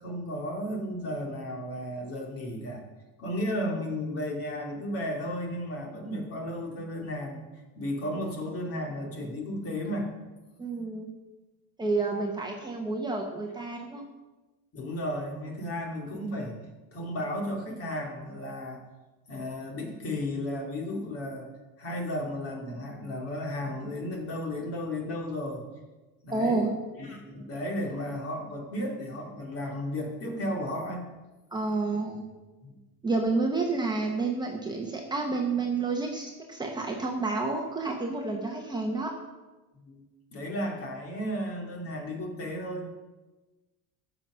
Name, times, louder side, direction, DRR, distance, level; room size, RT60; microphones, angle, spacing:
voice 1, 0.0-2.8 3.2-7.4 7.8-10.1 14.7-16.6 16.9-18.8 19.3-21.5 21.8-25.6 26.2-31.1 32.6-32.8 39.8-40.0 40.3-42.9, left 1 dB, 35° left, 1 dB, 2.5 m, -34 dB
voice 2, 10.6-11.1 11.8-14.0 26.3-26.7 31.5-32.3 33.0-39.1, right 3 dB, 10° right, 0 dB, 1.0 m, -29 dB
14.5 x 6.0 x 6.2 m, 1.2 s
cardioid pair, 155°, 38 cm